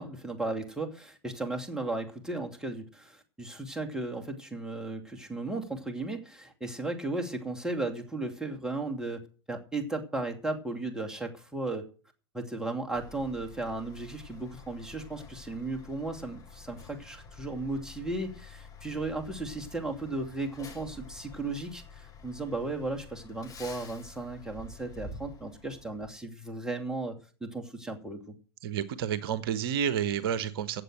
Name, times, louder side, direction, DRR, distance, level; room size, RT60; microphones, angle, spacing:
voice 1, 0.0-11.9 12.3-28.3, right 2 dB, 5° right, 2 dB, 2.6 m, -35 dB
Truck, 12.9-26.1, left 3 dB, 25° left, 6.1 m, -49 dB
voice 2, 28.6-30.8, right 8 dB, 60° right, 15 dB, 1.0 m, -30 dB
14.5 x 7.9 x 6.7 m, 0.38 s
figure-of-eight pair, 90°, 14 cm